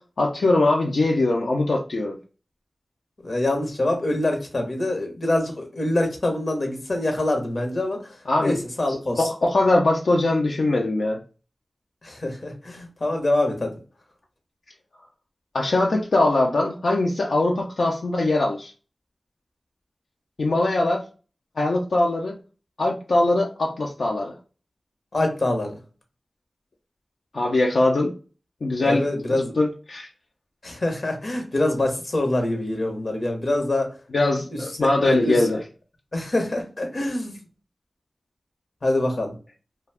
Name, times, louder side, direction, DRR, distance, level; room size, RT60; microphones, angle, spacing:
voice 1, 0.0-2.2 8.3-8.6 8.9-11.2 15.5-18.7 20.4-21.0 21.6-22.4 22.8-24.3 27.3-28.1 28.6-29.0 29.6-30.1 34.1-35.6, left 2 dB, 80° left, 0 dB, 0.4 m, -21 dB
voice 2, 3.2-9.3 12.0-13.7 25.1-25.8 28.8-29.5 30.6-33.9 34.5-35.5 36.1-37.4 38.8-39.4, left 1 dB, 65° left, 4 dB, 0.9 m, -25 dB
2.4 x 2.2 x 3.3 m, 0.36 s
cardioid pair, 45°, 0 cm